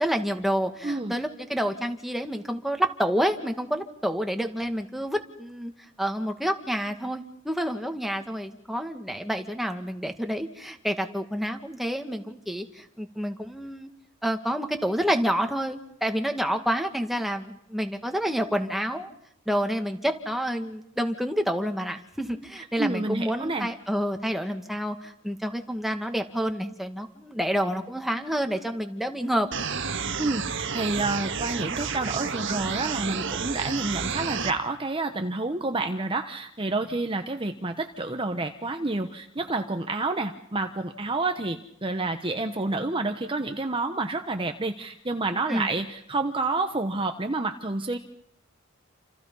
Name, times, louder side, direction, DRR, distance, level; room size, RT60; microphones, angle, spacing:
voice 1, 0.0-5.7 6.0-13.9 14.2-19.1 19.5-29.5 45.5-45.7, equal, ahead, 5 dB, 2.0 m, -28 dB
voice 2, 0.8-1.1 22.8-23.7 30.2-48.0, right 2 dB, 25° right, 6 dB, 1.1 m, -29 dB
sound 1, 29.5-34.5, right 6 dB, 60° right, 1.7 m, -30 dB
29.0 x 28.0 x 5.6 m, 0.74 s
head